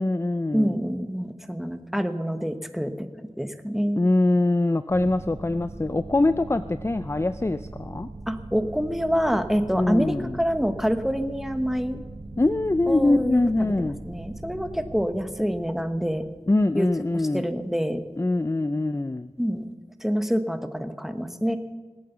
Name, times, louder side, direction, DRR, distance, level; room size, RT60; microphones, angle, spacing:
voice 1, 0.0-0.8 4.0-8.1 9.7-10.4 12.4-14.0 16.5-17.5 18.2-19.3, left 2 dB, 20° left, 12 dB, 0.4 m, -23 dB
voice 2, 0.5-3.1 3.4-4.0 8.3-12.0 12.9-16.2 16.7-16.9 17.1-18.0 19.4-19.7 20.0-21.6, equal, ahead, 8 dB, 1.1 m, -26 dB
sound 1, 4.9-18.1, right 2 dB, 70° right, 1.0 m, -41 dB
19.5 x 8.5 x 6.9 m, 1.3 s
wide cardioid pair, 40°, 12 cm